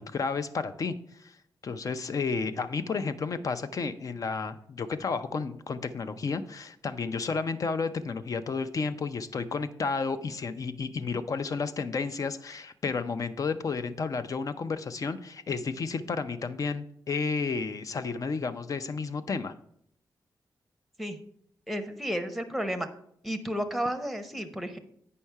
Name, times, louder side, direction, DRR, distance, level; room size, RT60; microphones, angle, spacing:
voice 1, 0.0-1.4 1.6-19.5, left 4 dB, 50° left, 11 dB, 0.5 m, -32 dB
voice 2, 21.7-22.9 23.2-24.8, equal, ahead, 7 dB, 0.8 m, -32 dB
8.6 x 5.5 x 4.6 m, 0.69 s
wide cardioid pair, 115°, 8 cm